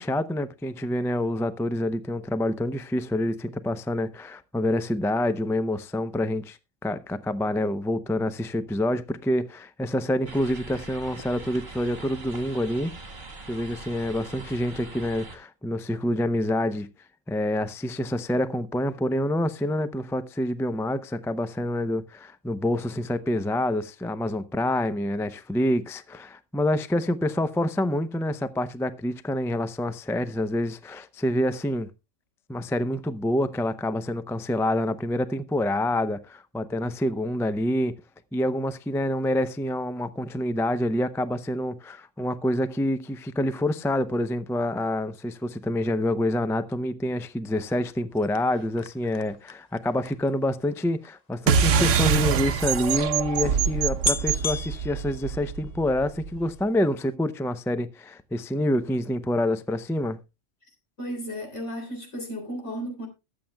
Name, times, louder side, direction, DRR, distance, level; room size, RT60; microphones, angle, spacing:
voice 1, 0.0-12.9 13.5-16.9 17.3-31.9 32.5-37.9 38.3-60.2, left 1 dB, 5° left, 0.3 m, -27 dB
sound 1, 10.3-15.4, right 3 dB, 40° right, 2.0 m, -42 dB
sound 2, 48.1-51.7 52.5-52.6 52.8-52.9 53.5-53.6 54.0-55.9 56.3-56.8 57.0-57.1, left 5 dB, 40° left, 0.7 m, -35 dB
sound 3, 51.5-56.4, right 7 dB, 80° right, 1.1 m, -24 dB
voice 2, 61.0-63.1, equal, 75° left, 4.0 m, -34 dB
21.5 x 7.6 x 2.2 m
omnidirectional pair, 1.3 m